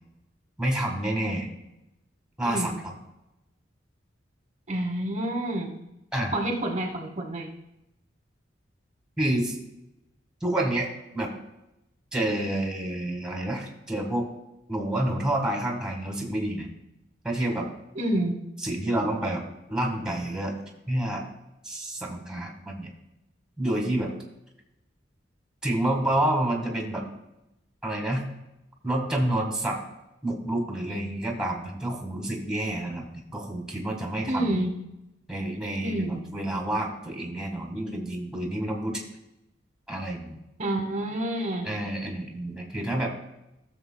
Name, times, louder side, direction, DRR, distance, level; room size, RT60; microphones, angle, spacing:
voice 1, 0.6-1.5 2.4-2.9 6.1-6.3 9.2-9.6 10.4-10.9 11.1-11.3 12.1-14.3 14.7-16.7 17.2-17.7 18.6-19.4 19.7-20.6 20.9-21.2 21.6-22.9 23.6-24.1 25.6-27.0 27.8-28.3 28.8-29.8 30.2-34.7 35.3-39.0 39.9-40.4 41.6-43.1, right 1 dB, 5° right, 0 dB, 1.6 m, -28 dB
voice 2, 2.4-2.8 4.7-5.7 6.3-7.5 17.9-18.3 34.3-34.7 35.8-36.2 40.6-41.7, right 1 dB, 40° right, 1 dB, 1.1 m, -28 dB
15.5 x 7.0 x 2.2 m, 0.90 s
head